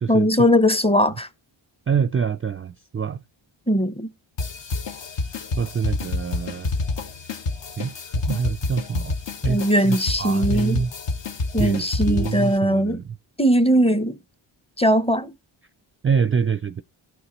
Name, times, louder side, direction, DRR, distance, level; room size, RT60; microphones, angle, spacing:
voice 1, 0.1-1.3 3.7-4.1 9.5-10.8 11.5-13.0 13.4-14.2 14.8-15.3, equal, 10° left, 0.8 m, -19 dB
voice 2, 1.9-3.2 5.6-6.7 7.8-9.1 9.4-10.9 11.6-13.1 16.0-16.8, right 6 dB, 25° right, 0.4 m, -26 dB
sound 1, 4.4-12.6, left 3 dB, 60° left, 1.2 m, -28 dB
17.5 x 5.8 x 3.0 m
cardioid pair, 45°, 49 cm